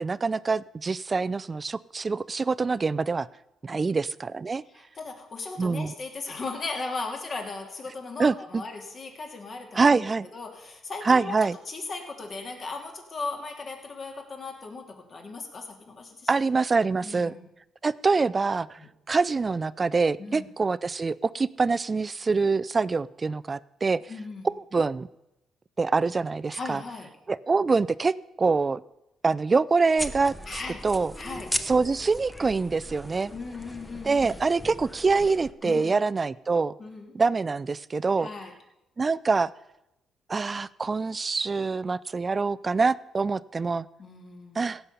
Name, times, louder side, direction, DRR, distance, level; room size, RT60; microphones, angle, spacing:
voice 1, 0.0-3.3 3.6-4.6 5.6-5.9 8.2-8.6 9.7-10.3 11.0-11.6 16.3-17.3 17.8-18.8 19.1-24.0 24.4-25.1 25.8-26.8 27.3-28.8 29.2-30.3 30.8-31.1 31.6-33.3 34.0-36.7 37.1-38.3 39.0-39.5 40.3-43.9 44.6-44.8, right 4 dB, 30° right, 19 dB, 0.4 m, -25 dB
voice 2, 4.7-11.4 11.7-16.3 17.0-17.5 18.8-18.9 20.2-20.5 24.1-24.5 26.5-27.1 30.5-30.8 31.2-31.5 33.3-34.4 35.6-36.0 36.8-37.2 38.2-38.5 44.0-44.7, left 3 dB, 45° left, 2 dB, 2.8 m, -37 dB
sound 1, 30.0-35.5, equal, 5° left, 0.9 m, -37 dB
16.5 x 5.5 x 8.4 m, 0.89 s
cardioid pair, 90°, 0 cm